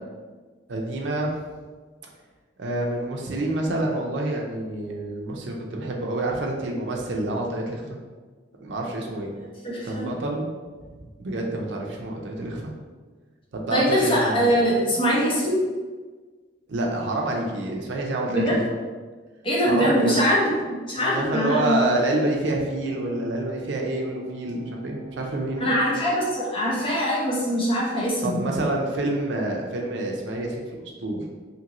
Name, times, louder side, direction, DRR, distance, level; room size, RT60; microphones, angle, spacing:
voice 1, 0.7-1.3 2.6-8.0 8.6-9.3 9.8-10.5 11.0-12.7 13.5-14.5 16.7-18.6 19.7-20.1 21.1-25.7 28.2-31.3, right 2 dB, 70° right, 0 dB, 0.5 m, -28 dB
voice 2, 9.6-10.1 13.7-15.6 18.3-18.5 19.4-20.5 20.9-21.8 25.6-28.4, equal, 30° left, -6 dB, 0.7 m, -22 dB
sound 1, 20.9-26.0, right 4 dB, 40° right, 0.8 m, -42 dB
2.8 x 2.6 x 2.9 m, 1.4 s
head